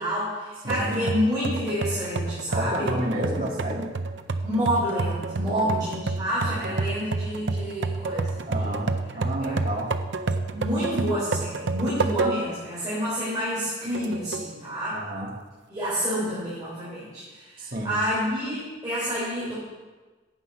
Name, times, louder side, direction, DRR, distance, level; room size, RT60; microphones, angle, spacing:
voice 1, 0.0-2.9 4.4-8.7 9.1-9.6 10.5-15.0 15.7-19.5, equal, 20° right, -10 dB, 3.7 m, -29 dB
voice 2, 0.6-1.1 2.5-3.9 5.4-5.8 6.4-6.8 8.5-9.9 14.9-15.3 17.6-18.0, right 1 dB, 50° right, -2 dB, 2.1 m, -31 dB
sound 1, 0.7-12.6 13.1-13.2 13.9-14.5, right 3 dB, 75° right, 0.6 m, -29 dB
9.8 x 8.4 x 5.8 m, 1.3 s
head